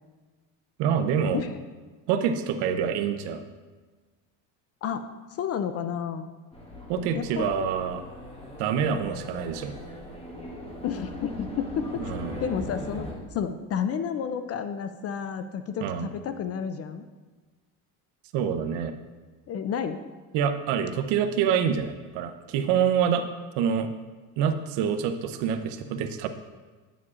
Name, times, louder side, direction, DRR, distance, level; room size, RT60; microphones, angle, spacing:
voice 1, 0.8-1.4 2.1-3.4 6.9-8.1 8.6-9.7 12.0-12.4 15.8-16.1 18.3-18.9 20.3-23.3 23.6-23.9 24.4-26.3, right 7 dB, 70° right, 8 dB, 0.8 m, -26 dB
voice 2, 4.8-6.3 7.1-7.5 10.8-12.1 12.4-13.1 13.3-17.0 19.5-20.0, left 7 dB, 35° left, 10 dB, 0.4 m, -31 dB
sound 1, 6.5-13.1, left 1 dB, 15° left, 1.5 m, -39 dB
9.6 x 7.2 x 2.5 m, 1.3 s
cardioid pair, 115°, 44 cm